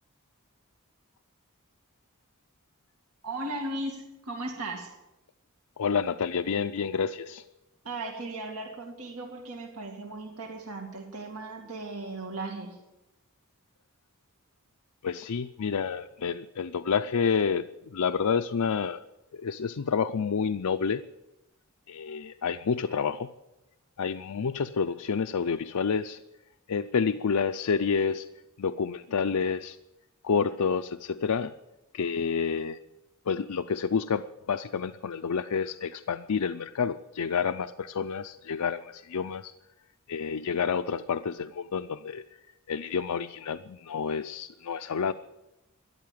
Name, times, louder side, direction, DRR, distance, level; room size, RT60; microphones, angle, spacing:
voice 1, 3.2-4.9 7.8-12.8, right 2 dB, 75° right, 2 dB, 2.3 m, -37 dB
voice 2, 5.8-7.4 15.0-17.7 17.9-19.0 19.3-21.0 21.9-23.3 24.0-26.2 26.7-28.3 28.6-29.8 30.2-31.5 31.9-32.8 33.3-39.5 40.1-42.2 42.7-45.1, left 6 dB, 90° left, 8 dB, 0.5 m, -29 dB
13.5 x 11.5 x 9.3 m, 0.97 s
head